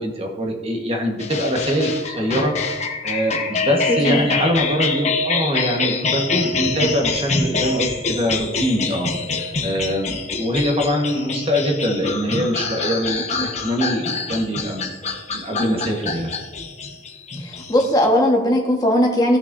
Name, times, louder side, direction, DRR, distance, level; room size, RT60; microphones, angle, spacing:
voice 1, 0.0-2.5 3.0-9.1 9.4-14.9 15.3-16.3, equal, 35° right, 2 dB, 1.5 m, -23 dB
sound 1, 1.2-18.1, left 4 dB, 40° left, 1.1 m, -25 dB
voice 2, 3.9-4.3 13.4-13.5 17.4-19.4, left 1 dB, 20° left, 0 dB, 1.5 m, -18 dB
16.5 x 6.1 x 2.7 m, 1.2 s
head